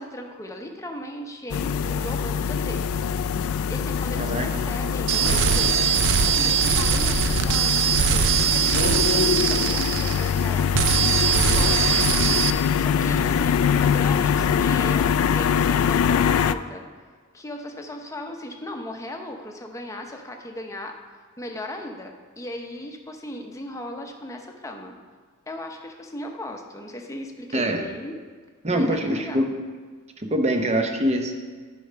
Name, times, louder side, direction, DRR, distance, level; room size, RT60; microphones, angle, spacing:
voice 1, 0.0-3.1 3.7-5.8 6.2-10.8 11.3-16.8 17.3-21.0 21.4-25.0 25.5-28.2 28.7-29.5, left 1 dB, 15° left, 3 dB, 0.8 m, -37 dB
sound 1, 1.5-16.6, left 7 dB, 70° left, 0.3 m, -23 dB
voice 2, 4.2-4.7 27.5-27.8 28.6-29.6 30.2-31.3, right 1 dB, 30° right, 4 dB, 0.9 m, -24 dB
sound 2, 5.1-10.4 10.7-12.5, right 8 dB, 60° right, 0.4 m, -22 dB
9.9 x 5.0 x 5.6 m, 1.6 s
head